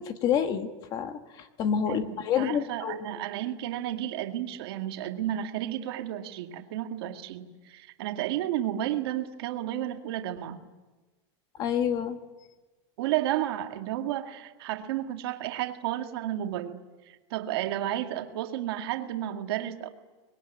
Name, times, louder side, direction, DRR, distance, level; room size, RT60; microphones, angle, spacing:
voice 1, 0.0-3.2 11.6-12.2, left 8 dB, 25° left, 9 dB, 1.4 m, -28 dB
voice 2, 1.9-10.6 13.0-19.9, right 12 dB, 55° right, 5 dB, 2.0 m, -32 dB
25.0 x 21.5 x 9.9 m, 1.2 s
supercardioid pair, 170°, 15 cm